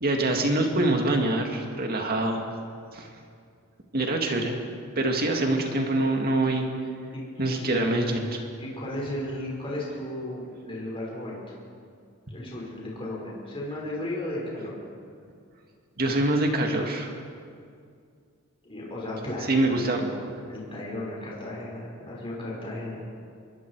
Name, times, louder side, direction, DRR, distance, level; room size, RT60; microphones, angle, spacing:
voice 1, 0.0-2.5 2.9-3.1 3.9-4.6 5.0-6.7 7.4-8.5 16.0-17.1 19.5-20.0, right 2 dB, 45° right, 2 dB, 2.2 m, -25 dB
voice 2, 7.1-7.7 8.6-11.6 12.3-14.7 18.6-20.2 20.4-23.0, left 1 dB, 25° left, -5 dB, 5.7 m, -35 dB
25.5 x 22.0 x 4.8 m, 2.3 s
head